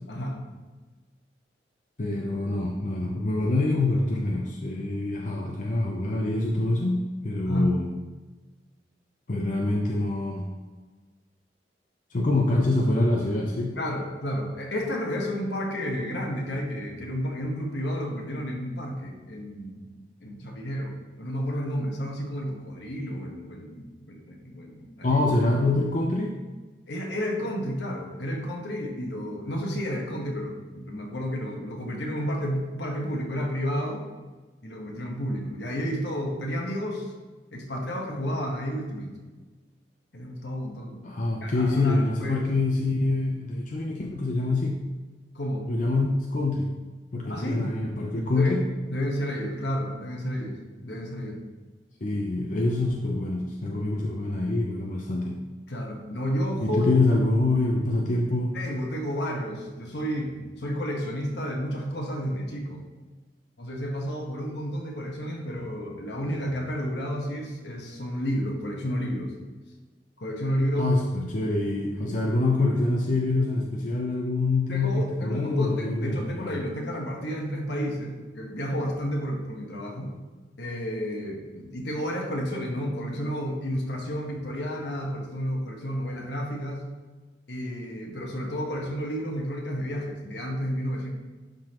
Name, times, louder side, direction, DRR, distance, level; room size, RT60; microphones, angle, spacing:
voice 1, 0.1-0.4 7.5-7.7 13.8-19.9 20.2-25.2 26.9-34.1 34.6-37.1 37.5-39.2 40.1-41.0 41.4-42.5 45.3-45.7 47.2-47.8 48.1-48.6 48.9-51.4 55.7-56.9 58.5-62.8 63.6-69.3 70.2-71.0 72.0-72.2 74.7-80.1 80.6-86.9 87.5-91.1, equal, 70° left, 1 dB, 1.3 m, -31 dB
voice 2, 2.0-7.9 9.3-10.5 12.1-13.8 25.0-26.4 41.0-44.8 45.7-46.7 47.1-48.6 52.0-55.4 56.6-58.5 70.8-76.6, left 2 dB, 45° left, -1 dB, 0.6 m, -25 dB
11.5 x 3.9 x 3.0 m, 1.3 s
head